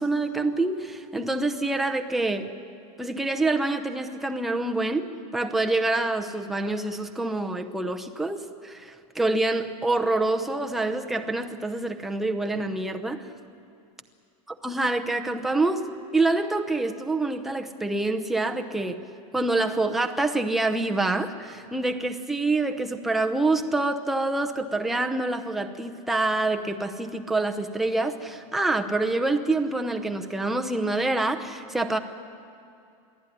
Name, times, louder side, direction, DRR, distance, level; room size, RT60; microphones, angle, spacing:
voice 1, 0.0-2.5 3.0-5.1 5.3-13.3 14.6-19.0 19.3-32.0, right 2 dB, ahead, 4 dB, 0.7 m, -26 dB
23.0 x 14.5 x 10.0 m, 2.5 s
supercardioid pair, 170°, 17 cm